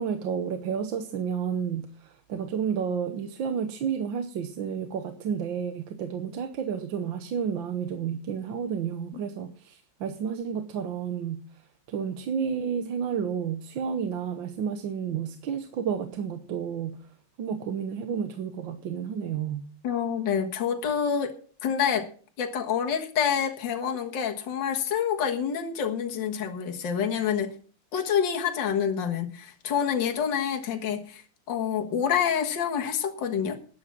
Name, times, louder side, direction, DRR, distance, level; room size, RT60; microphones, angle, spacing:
voice 1, 0.0-11.4 11.9-17.0 17.4-19.7, right 7 dB, 65° right, 8 dB, 1.6 m, -31 dB
voice 2, 19.8-21.3 21.6-22.1 22.4-27.5 27.9-33.6, left 8 dB, 60° left, 3 dB, 2.1 m, -27 dB
12.0 x 9.8 x 6.1 m, 0.41 s
omnidirectional pair, 2.4 m